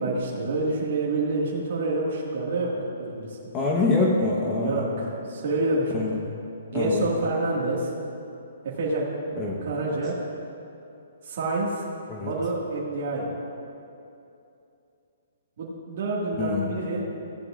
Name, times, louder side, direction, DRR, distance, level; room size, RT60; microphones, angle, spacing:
voice 1, 0.0-2.7 3.0-3.5 4.6-6.2 6.7-7.9 8.6-9.1 9.6-10.1 11.2-11.9 12.2-13.3 15.6-17.1, right 2 dB, 55° right, -5 dB, 1.9 m, -27 dB
voice 2, 3.5-4.8 5.9-6.2 6.7-7.1 9.4-9.6 12.1-12.3 16.4-16.7, left 3 dB, 20° left, -2 dB, 1.0 m, -25 dB
16.0 x 9.5 x 2.5 m, 2.7 s
hypercardioid pair, 155°, 0 cm